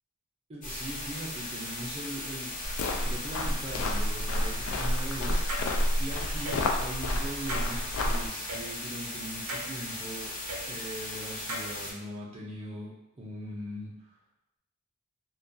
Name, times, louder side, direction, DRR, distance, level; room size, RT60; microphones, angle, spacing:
voice 1, 0.5-2.6 3.0-10.3 10.6-13.9, right 1 dB, 30° right, -3 dB, 0.5 m, -40 dB
sound 1, 0.6-11.9, left 1 dB, 35° left, 0.6 m, -38 dB
sound 2, 2.6-8.3, left 1 dB, 70° left, 0.3 m, -30 dB
sound 3, 5.5-5.6 6.4-6.7 7.5-7.6 8.5-8.6 9.5-9.7 10.5-10.6 11.5-11.6, right 1 dB, 80° right, 0.5 m, -36 dB
2.2 x 2.2 x 2.6 m, 0.85 s
head